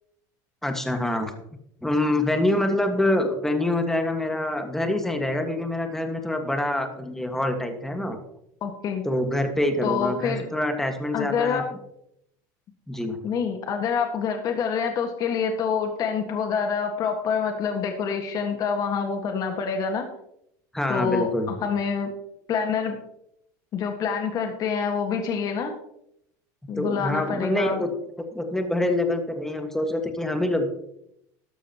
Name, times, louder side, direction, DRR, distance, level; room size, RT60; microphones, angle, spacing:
voice 1, 0.6-1.3 1.8-8.2 9.0-11.6 12.9-13.2 20.7-21.5 26.8-27.9 28.3-30.7, left 1 dB, 5° left, 5 dB, 1.6 m, -25 dB
voice 2, 8.6-9.0 9.8-10.4 11.1-11.6 13.2-20.1 20.9-22.1 22.5-23.0 23.7-25.7 26.7-27.8, left 6 dB, 40° left, 4 dB, 1.7 m, -26 dB
13.0 x 12.0 x 3.0 m, 0.75 s
supercardioid pair, 125°, 9 cm